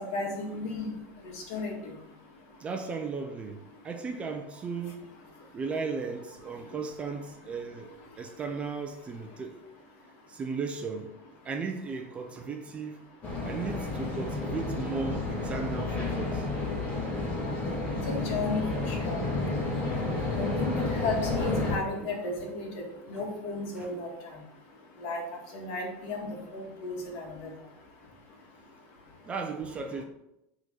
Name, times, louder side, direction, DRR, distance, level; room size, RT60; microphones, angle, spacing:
voice 1, 0.1-0.9 1.5-1.8 18.1-19.2 20.4-24.1 25.0-25.2 25.5-27.5, left 3 dB, 55° left, 2.0 m, -34 dB
voice 2, 2.6-5.1 5.5-7.9 8.2-9.6 10.3-11.1 11.4-13.0 13.4-16.5 22.0-22.2 23.1-23.2 23.8-23.9 29.2-30.0, right 4 dB, 20° right, 0.5 m, -36 dB
sound 1, 13.2-21.8, left 2 dB, 20° left, 2.5 m, -31 dB
8.0 x 3.8 x 5.4 m
supercardioid pair, 160°, 7 cm